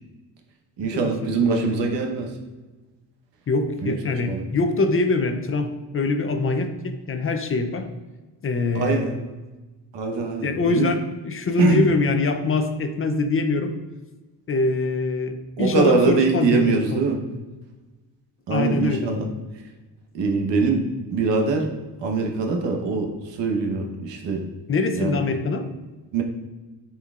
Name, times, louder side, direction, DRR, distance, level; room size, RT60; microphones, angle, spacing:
voice 1, 0.8-2.4 3.8-3.9 4.3-4.4 8.7-9.1 9.9-10.9 11.6-11.8 15.6-17.2 18.5-19.3 19.5-19.6 20.1-20.8 21.1-21.7 22.0-24.5 24.9-25.2 26.1-26.2, right 4 dB, 85° right, 2 dB, 1.1 m, -23 dB
voice 2, 1.4-1.8 3.5-7.9 8.4-9.1 10.4-13.7 14.5-17.0 18.5-19.1 24.7-25.7, left 3 dB, 30° left, 7 dB, 0.5 m, -24 dB
10.5 x 4.5 x 2.4 m, 1.2 s
cardioid pair, 150°, 42 cm